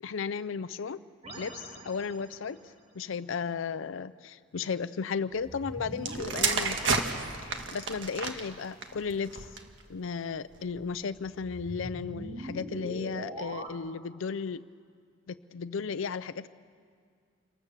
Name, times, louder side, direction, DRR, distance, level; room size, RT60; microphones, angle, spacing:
voice 1, 0.0-1.0 1.4-7.0 7.4-9.5 9.9-14.6 15.3-16.5, left 5 dB, 70° left, 13 dB, 0.5 m, -35 dB
sound 1, 1.2-2.6 5.3-8.0 11.2-13.7, right 1 dB, 35° right, 1.8 m, -42 dB
sound 2, 6.0-9.8 10.6-10.9, right 4 dB, 65° right, 1.7 m, -32 dB
27.5 x 19.0 x 7.3 m, 2.1 s
head